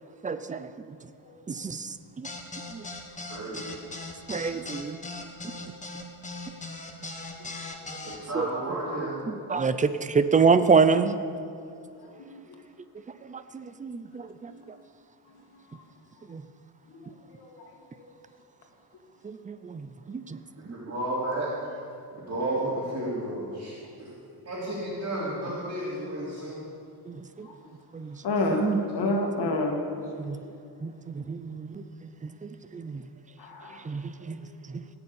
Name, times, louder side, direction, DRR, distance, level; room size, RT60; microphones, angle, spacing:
voice 1, 0.2-0.7 1.5-2.3 2.7-2.8 4.3-5.0 8.3-8.5 9.3-11.2 13.3-14.5 16.3-16.4 19.2-20.4 27.1-27.5 27.9-28.2 28.5-28.8 30.2-30.4 30.8-31.8 32.2-33.0 33.8-34.4 34.7-34.8, right 5 dB, 20° right, 12 dB, 0.5 m, -27 dB
sound 1, 2.2-8.2, left 2 dB, 20° left, 1.4 m, -39 dB
voice 2, 3.3-3.7 8.0-9.2 20.6-21.5 22.1-24.2 24.4-26.6 28.4-28.6 33.6-33.7 34.2-34.3, right 1 dB, 40° right, -10 dB, 3.9 m, -32 dB
voice 3, 12.0-12.4 14.5-14.6 17.0-17.1 17.4-17.6 18.1-18.2 28.2-28.7 28.9-29.8 33.4-33.8, left 2 dB, 70° left, 2 dB, 2.3 m, -29 dB
17.5 x 7.0 x 8.8 m, 2.5 s
cardioid pair, 145°, 39 cm